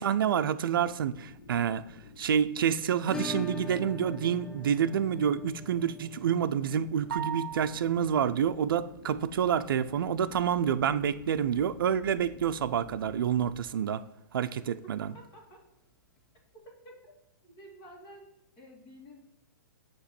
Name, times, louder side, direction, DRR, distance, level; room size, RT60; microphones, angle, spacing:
voice 1, 0.0-1.9 2.2-14.0 14.3-15.1, right 8 dB, 75° right, 12 dB, 0.5 m, -28 dB
sound 1, 0.7-13.6, left 3 dB, 80° left, 1.1 m, -51 dB
Acoustic guitar / Strum, 3.1-11.7 11.9-12.0 12.3-12.4 12.8-12.9 14.9-15.0 16.2-16.3, left 3 dB, 5° left, 0.5 m, -44 dB
sound 2, 7.1-8.2, right 9 dB, 50° right, 0.9 m, -37 dB
voice 2, 15.1-15.6 16.8-17.1 17.4-18.3 18.6-19.2, equal, 30° left, -1 dB, 1.9 m, -51 dB
8.4 x 3.0 x 5.9 m, 0.82 s
hypercardioid pair, 150°, 12 cm